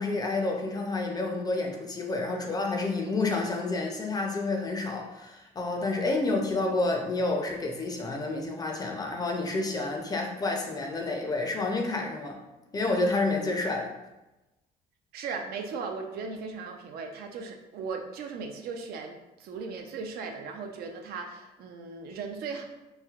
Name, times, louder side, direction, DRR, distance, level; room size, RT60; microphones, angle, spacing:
voice 1, 0.0-12.4 12.7-13.9, left 2 dB, 20° left, 2 dB, 0.5 m, -29 dB
voice 2, 2.3-2.6 15.1-22.6, right 4 dB, 65° right, 4 dB, 0.4 m, -37 dB
3.2 x 2.6 x 2.3 m, 1.0 s
cardioid pair, 110°, 17 cm